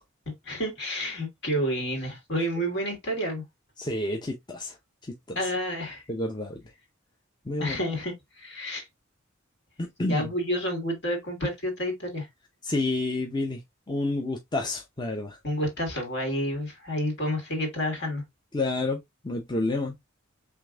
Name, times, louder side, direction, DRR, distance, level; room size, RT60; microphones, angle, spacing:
voice 1, 0.4-3.4 5.4-6.0 7.6-8.8 10.1-12.3 15.4-18.2, equal, 60° left, 2.3 m, -29 dB
voice 2, 3.8-4.8 5.3-5.4 6.1-6.6 7.5-7.8 9.8-10.2 12.6-13.6 13.9-15.4 18.5-20.0, left 2 dB, 20° left, 0.7 m, -29 dB
5.2 x 3.4 x 2.4 m
head